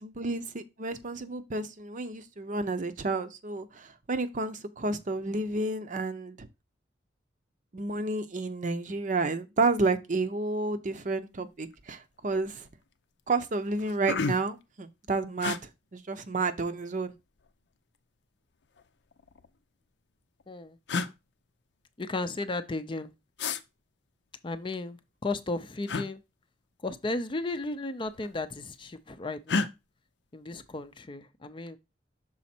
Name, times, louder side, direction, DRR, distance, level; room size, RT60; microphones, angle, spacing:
voice 1, 0.0-6.5 7.7-12.7 13.3-17.1, right 3 dB, 45° right, 0.7 m, -31 dB
sound 1, 11.7-11.9 12.3-12.8 13.3-13.4 13.7-14.6 15.4-15.6 16.8-17.5 18.6-19.5 20.4-20.5 20.9-21.1 23.4-23.6 25.9-26.1 27.4-27.7 28.0-28.6 29.5-29.7, left 4 dB, 75° left, 0.6 m, -32 dB
voice 2, 20.5-20.8 22.0-23.1 24.4-26.2 26.8-29.7 30.3-31.8, left 2 dB, 30° left, 0.5 m, -34 dB
6.3 x 4.1 x 4.3 m
head